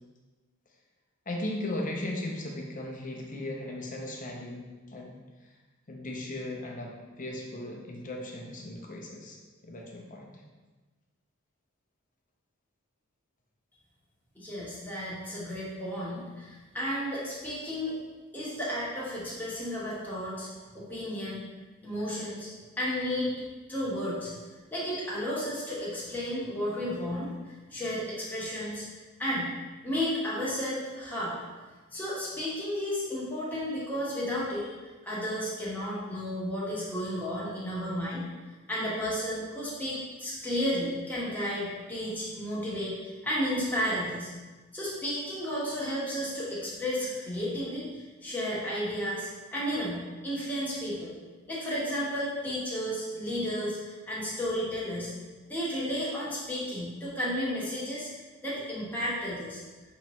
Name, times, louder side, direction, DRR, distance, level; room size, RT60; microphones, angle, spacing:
voice 1, 1.3-5.5 5.9-9.4 9.6-10.4, left 1 dB, 40° left, 0 dB, 0.7 m, -37 dB
voice 2, 14.4-18.0 18.3-20.5 20.7-21.4 21.8-22.5 22.8-23.3 23.7-24.3 24.7-27.3 27.7-28.9 29.2-29.5 29.8-31.3 31.9-34.7 35.0-38.3 38.7-44.3 44.7-51.1 51.5-55.1 55.5-58.1 58.4-59.6, equal, 10° left, -8 dB, 1.2 m, -33 dB
5.8 x 3.0 x 3.0 m, 1.3 s
head